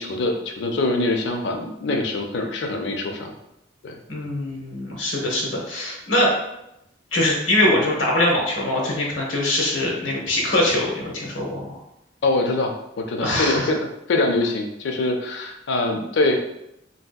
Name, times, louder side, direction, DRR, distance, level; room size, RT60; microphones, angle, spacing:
voice 1, 0.0-3.3 3.8-3.9 12.2-16.4, left 2 dB, 60° left, 4 dB, 0.4 m, -24 dB
voice 2, 4.1-6.3 7.1-11.8 13.2-13.7, left 1 dB, 75° left, -1 dB, 0.9 m, -22 dB
3.2 x 2.7 x 2.2 m, 0.83 s
head